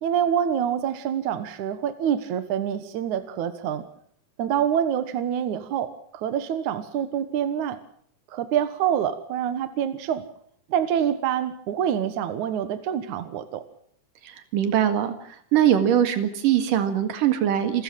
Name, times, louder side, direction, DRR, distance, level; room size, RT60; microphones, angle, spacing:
voice 1, 0.0-3.8 4.4-7.8 8.3-10.3 10.7-13.6, right 9 dB, 70° right, 11 dB, 2.7 m, -26 dB
voice 2, 14.3-15.1 15.5-17.8, right 10 dB, 90° right, 9 dB, 3.6 m, -22 dB
28.5 x 14.0 x 7.6 m, 0.64 s
omnidirectional pair, 3.7 m